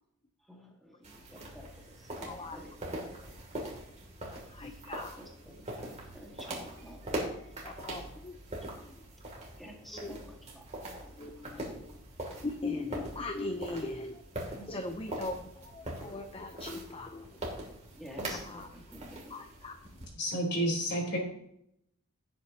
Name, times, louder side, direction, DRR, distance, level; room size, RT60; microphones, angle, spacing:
voice 1, 0.5-1.7 2.1-2.7 3.0-3.1 5.2-7.1 7.6-7.7 9.6-10.6 11.0-11.1 11.6-11.7 14.5-14.7 15.1-15.2 18.0-18.6 18.9-19.2, equal, ahead, -2 dB, 1.8 m, -50 dB
sound 1, 1.0-20.1, right 1 dB, 30° right, 2.7 m, -42 dB
voice 2, 2.3-2.8 4.5-5.2 7.6-8.3 8.8-9.0 9.9-10.2 11.2-12.0 12.4-14.2 14.7-17.4 18.4-18.7 19.3-19.8, left 2 dB, 25° left, 5 dB, 0.7 m, -40 dB
voice 3, 20.1-21.2, equal, 50° left, -1 dB, 3.8 m, -30 dB
17.0 x 8.1 x 2.9 m, 0.76 s
head